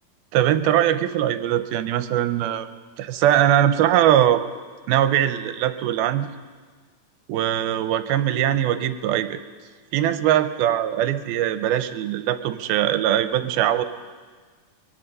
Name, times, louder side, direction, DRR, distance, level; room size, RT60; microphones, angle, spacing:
voice 1, 0.3-2.7 3.0-4.4 4.9-6.3 7.3-9.4 9.9-13.8, right 11 dB, 80° right, 10 dB, 2.5 m, -21 dB
23.5 x 21.5 x 5.5 m, 1.5 s
omnidirectional pair, 4.6 m